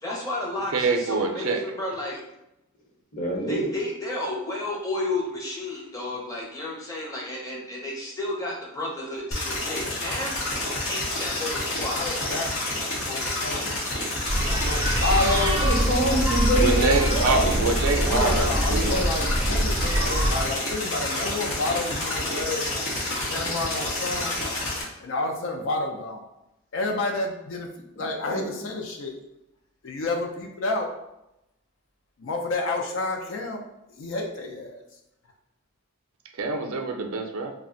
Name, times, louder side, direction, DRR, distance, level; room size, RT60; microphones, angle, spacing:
voice 1, 0.0-2.2 3.5-10.4 10.8-12.1, left 1 dB, 15° left, -3 dB, 0.6 m, -32 dB
voice 2, 0.7-1.6 16.6-19.0 36.4-37.5, right 3 dB, 80° right, 4 dB, 0.4 m, -25 dB
voice 3, 3.1-3.7 15.6-17.7 18.0-18.4 18.7-19.0 28.0-28.4, right 1 dB, 45° left, -4 dB, 0.9 m, -26 dB
sound 1, 9.3-24.8, left 1 dB, 90° left, 0.8 m, -29 dB
voice 4, 12.0-13.8 14.7-15.6 18.1-22.6 23.1-24.4 25.0-26.3 26.7-27.7 28.0-29.2 29.8-30.9 32.2-33.6 34.0-34.8, left 2 dB, 65° left, 2 dB, 0.4 m, -30 dB
sound 2, 14.3-20.4, right 1 dB, 15° right, 0.3 m, -24 dB
2.4 x 2.1 x 3.7 m, 0.89 s
head